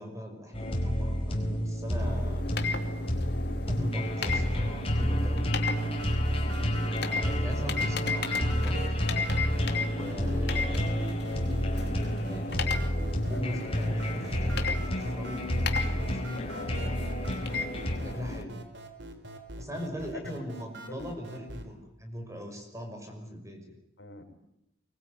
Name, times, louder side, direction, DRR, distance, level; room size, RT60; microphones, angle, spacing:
voice 1, 0.0-2.4 3.7-5.5 6.3-8.8 9.9-11.0 12.3-12.7 13.3-15.5 15.8-16.5 18.0-18.6 19.6-23.8, equal, 15° right, 4 dB, 5.8 m, -40 dB
sound 1, 0.5-18.0, equal, 30° left, 4.6 m, -30 dB
sound 2, 2.0-18.4, left 4 dB, 60° left, 2.8 m, -36 dB
sound 3, 5.7-21.7, right 2 dB, 70° right, 3.7 m, -44 dB
voice 2, 16.5-17.0 20.0-20.4 20.9-21.1 24.0-24.2, left 2 dB, 85° left, 5 dB, 5.9 m, -44 dB
24.5 x 22.0 x 9.6 m, 0.80 s
head